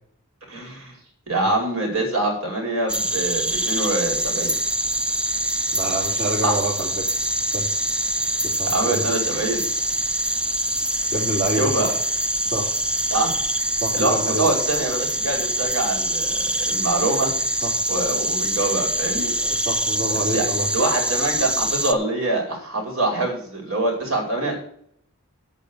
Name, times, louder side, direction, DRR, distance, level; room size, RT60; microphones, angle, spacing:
voice 1, 0.5-1.0 1.3-4.5 6.4-6.5 8.7-9.6 11.6-11.9 13.1-13.4 13.9-17.3 17.9-19.3 20.3-20.5 20.7-24.5, right 2 dB, 75° right, 2 dB, 5.0 m, -24 dB
sound 1, 2.9-21.9, right 1 dB, 5° right, 0.3 m, -24 dB
voice 2, 5.7-7.2 7.5-7.7 8.4-9.0 11.1-12.0 12.5-12.7 13.8-14.5 17.6-17.7 19.4-20.7, right 1 dB, 50° right, -4 dB, 2.4 m, -27 dB
8.8 x 6.6 x 7.9 m, 0.63 s
head